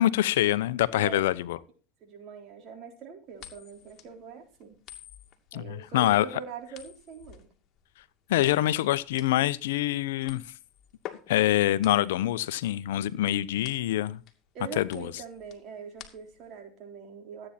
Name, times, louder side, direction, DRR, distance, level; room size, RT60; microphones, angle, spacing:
voice 1, 0.0-1.6 5.5-6.3 8.3-10.4 11.3-14.2 14.8-15.1, left 14 dB, 80° left, 0.8 m, -25 dB
voice 2, 0.9-1.3 2.0-4.8 5.5-7.5 14.5-17.5, right 6 dB, 50° right, 4.1 m, -43 dB
sound 1, 3.4-16.6, left 11 dB, 45° left, 2.4 m, -49 dB
14.5 x 8.8 x 4.2 m
hypercardioid pair, 100°, 0 cm